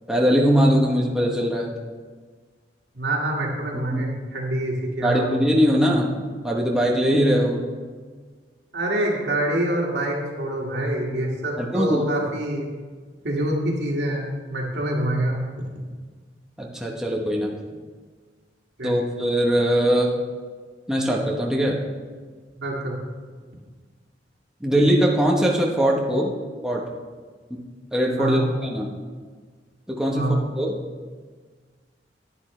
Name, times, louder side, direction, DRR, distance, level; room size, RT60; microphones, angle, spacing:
voice 1, 0.1-1.7 3.9-4.0 5.0-7.6 11.6-12.0 16.6-17.5 18.8-20.1 20.9-21.8 24.6-26.3 26.6-26.8 27.5-27.6 27.9-28.9 29.9-30.8, equal, 5° right, -3 dB, 1.0 m, -21 dB
voice 2, 2.9-5.4 8.7-12.7 13.2-15.6 18.8-19.0 22.6-23.0 28.2-28.4 30.1-30.4, right 1 dB, 75° right, -2 dB, 2.1 m, -26 dB
10.5 x 9.8 x 3.2 m, 1.5 s
head